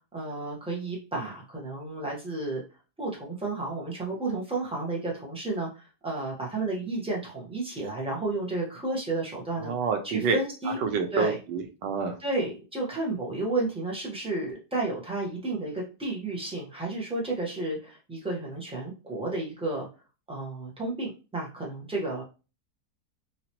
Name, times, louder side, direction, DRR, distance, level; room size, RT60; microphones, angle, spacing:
voice 1, 0.1-2.6 3.0-9.7 10.0-10.8 11.1-11.3 12.2-19.9 20.3-22.2, right 2 dB, 5° right, -3 dB, 0.7 m, -32 dB
voice 2, 9.6-10.4 10.8-12.2, right 5 dB, 85° right, 6 dB, 1.3 m, -28 dB
3.0 x 2.9 x 2.9 m, 0.32 s
omnidirectional pair, 1.8 m